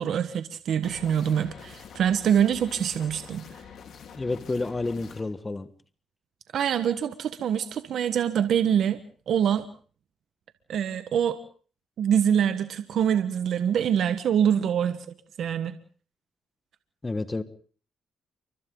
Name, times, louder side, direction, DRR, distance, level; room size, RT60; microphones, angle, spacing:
voice 1, 0.0-3.4 6.5-9.0 9.3-9.7 10.7-11.4 12.0-15.0 15.4-15.7, right 9 dB, 65° right, 10 dB, 1.3 m, -24 dB
sound 1, 0.8-5.2, left 7 dB, 65° left, 3.7 m, -46 dB
voice 2, 4.1-5.7 17.0-17.4, left 3 dB, 20° left, 12 dB, 1.4 m, -30 dB
29.0 x 24.5 x 3.9 m, 0.43 s
cardioid pair, 90°, 0 cm